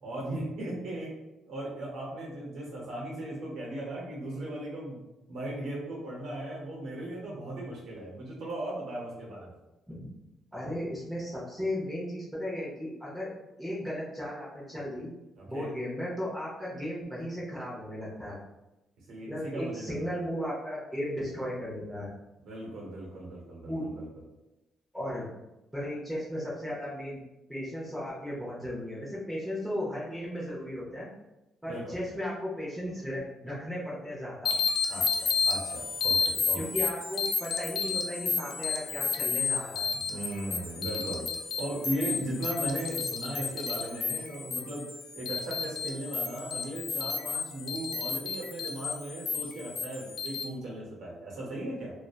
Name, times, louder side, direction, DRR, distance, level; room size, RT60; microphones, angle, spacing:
voice 1, 0.0-1.1 1.5-5.0 5.3-9.6 15.4-15.7 19.1-20.1 22.4-24.1 31.7-32.0 34.9-36.8 40.1-41.3 41.6-44.8 45.1-51.9, right 1 dB, 75° right, -4 dB, 0.8 m, -37 dB
voice 2, 10.5-13.3 13.6-15.1 15.5-18.4 19.3-22.1 23.7-23.9 24.9-25.3 25.7-27.2 27.5-31.1 31.6-34.6 36.6-39.9, equal, 5° right, -7 dB, 0.7 m, -35 dB
sound 1, 34.5-50.4, left 5 dB, 60° left, 0.3 m, -32 dB
2.6 x 2.2 x 2.3 m, 0.98 s
cardioid pair, 90°, 0 cm